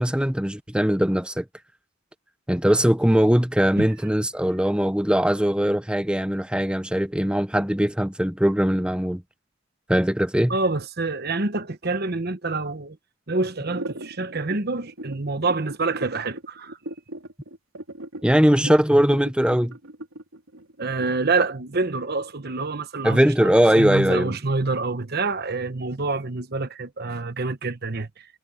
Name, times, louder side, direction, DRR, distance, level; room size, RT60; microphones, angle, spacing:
voice 1, 0.0-1.4 2.5-9.2 9.9-10.6 18.2-19.7 23.0-24.4, equal, 5° right, 0.9 m, -20 dB
voice 2, 10.5-13.0 13.3-16.8 20.8-28.3, right 3 dB, 50° right, 1.1 m, -27 dB
sound 1, 13.6-21.4, right 1 dB, 90° right, 3.4 m, -37 dB
head